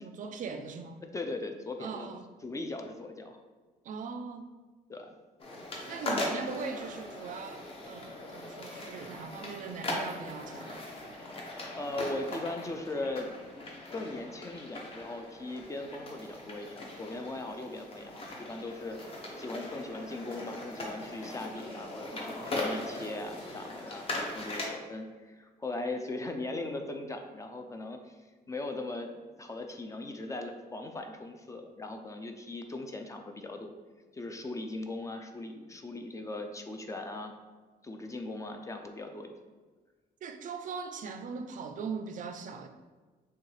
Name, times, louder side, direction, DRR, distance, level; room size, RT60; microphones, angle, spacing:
voice 1, 0.0-1.0 1.8-2.2 3.8-4.5 5.9-10.8 40.2-42.7, right 5 dB, 55° right, 0.4 m, -40 dB
voice 2, 1.1-2.1 2.4-3.4 4.9-5.1 11.7-13.3 13.9-28.2 28.5-33.7 34.1-37.3 37.8-39.3, left 2 dB, 20° left, 0.3 m, -39 dB
sound 1, 5.4-24.7, left 2 dB, 35° left, 0.8 m, -39 dB
6.3 x 2.3 x 3.2 m
cardioid pair, 150°, 16 cm